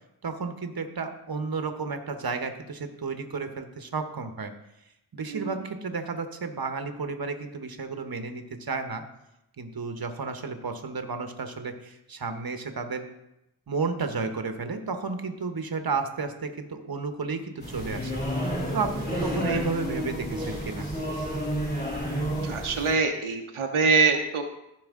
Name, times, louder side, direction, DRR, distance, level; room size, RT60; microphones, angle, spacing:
voice 1, 0.2-4.5 5.1-9.0 9.6-13.1 13.7-18.2 18.7-20.9, right 4 dB, 45° right, 7 dB, 1.1 m, -32 dB
sound 1, 17.6-22.9, equal, 20° left, 2.9 m, -30 dB
voice 2, 22.4-24.4, right 4 dB, 85° right, 3 dB, 0.9 m, -24 dB
14.5 x 4.8 x 3.7 m, 0.87 s
cardioid pair, 50°, 48 cm